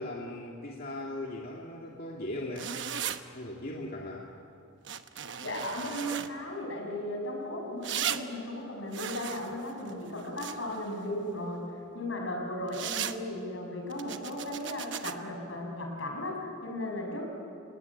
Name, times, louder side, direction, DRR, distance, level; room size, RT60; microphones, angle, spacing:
voice 1, 0.0-2.8 3.3-4.3, left 1 dB, 50° left, -2 dB, 2.2 m, -38 dB
sound 1, 2.6-3.2 4.8-6.3 7.8-8.2 8.9-10.8 12.7-13.2 13.9-15.1, right 9 dB, 65° right, 1.0 m, -36 dB
voice 2, 5.4-11.7 11.9-17.2, left 1 dB, 75° left, 1 dB, 6.4 m, -36 dB
27.5 x 18.5 x 9.8 m, 2.6 s
head